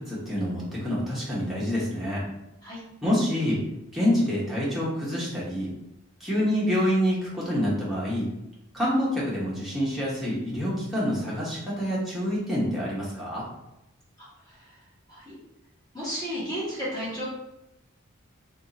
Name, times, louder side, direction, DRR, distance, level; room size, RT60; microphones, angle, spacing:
voice 1, 0.0-2.2 3.0-3.6 3.9-5.7 6.2-8.3 8.7-13.4, equal, ahead, -8 dB, 0.9 m, -27 dB
voice 2, 14.2-14.6 15.1-15.4 15.9-17.2, equal, 20° left, -7 dB, 1.1 m, -33 dB
2.6 x 2.4 x 4.0 m, 0.88 s
head